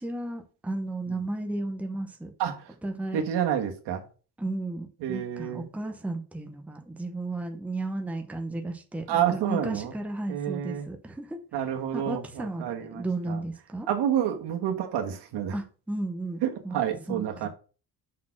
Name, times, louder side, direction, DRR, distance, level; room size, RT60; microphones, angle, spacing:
voice 1, 0.0-2.3 2.8-3.2 4.4-11.6 11.9-13.9 15.5-16.8 17.1-17.5, right 2 dB, 5° right, 0.8 m, -34 dB
voice 2, 3.1-4.0 5.0-5.7 9.1-9.9 10.3-10.9 11.5-13.4 13.9-15.5 16.4-17.5, right 9 dB, 80° right, 1.6 m, -29 dB
6.3 x 4.3 x 5.9 m
cardioid pair, 175°, 40 cm